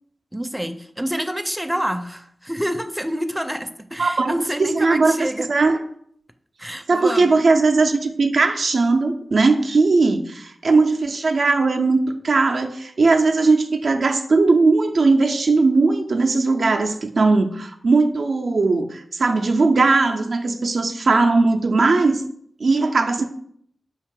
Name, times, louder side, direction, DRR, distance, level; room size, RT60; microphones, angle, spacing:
voice 1, 0.3-5.5 6.6-7.4, equal, 5° right, 8 dB, 0.4 m, -27 dB
voice 2, 4.0-4.3 4.6-5.1 5.5-5.8 6.9-22.2 22.6-23.2, right 3 dB, 70° right, 5 dB, 0.4 m, -18 dB
4.8 x 2.6 x 3.7 m, 0.65 s
cardioid pair, 40°, 0 cm